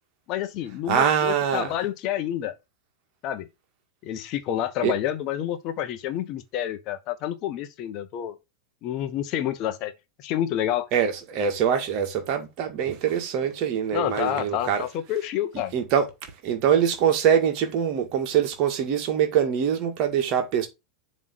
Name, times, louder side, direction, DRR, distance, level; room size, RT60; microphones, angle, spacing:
voice 1, 0.3-2.5 3.2-3.5 4.0-8.3 8.8-9.9 10.2-10.9 13.9-15.7, left 11 dB, 40° left, 0.9 m, -28 dB
voice 2, 0.9-1.7 4.8-4.9 10.9-14.8 15.7-16.1 16.4-20.7, right 8 dB, 40° right, 1.7 m, -23 dB
7.2 x 3.2 x 5.8 m
figure-of-eight pair, 90°, 0 cm